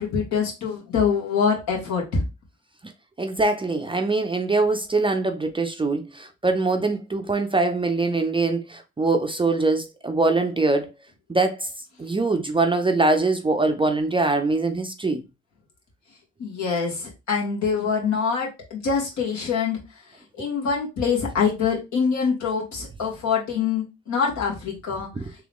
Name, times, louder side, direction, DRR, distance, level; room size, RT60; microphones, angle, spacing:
voice 1, 0.0-2.2 16.4-19.8 20.3-25.1, left 6 dB, 70° left, 1.9 m, -24 dB
voice 2, 3.2-10.9 11.3-11.7 12.0-15.2, right 3 dB, 15° right, 0.5 m, -23 dB
3.7 x 2.9 x 3.5 m
cardioid pair, 90°, 30 cm